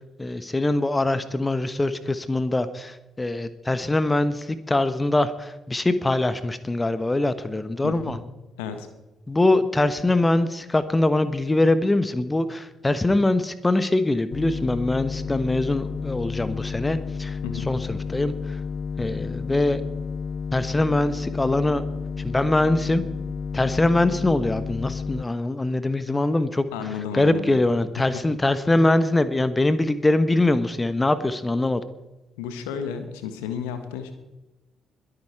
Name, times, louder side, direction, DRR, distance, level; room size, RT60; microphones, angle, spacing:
voice 1, 0.2-8.2 9.3-17.4 17.7-18.3 19.0-19.8 20.5-21.8 22.2-23.0 23.5-26.7 27.1-31.8, left 2 dB, 20° left, 13 dB, 1.1 m, -23 dB
voice 2, 7.8-8.2 8.6-8.9 17.4-17.7 26.7-27.6 28.0-28.1 32.4-34.1, left 7 dB, 75° left, 8 dB, 1.5 m, -32 dB
sound 1, 14.3-25.2, left 5 dB, 50° left, 0.4 m, -31 dB
22.0 x 8.9 x 4.7 m, 1.0 s
figure-of-eight pair, 45°, 0 cm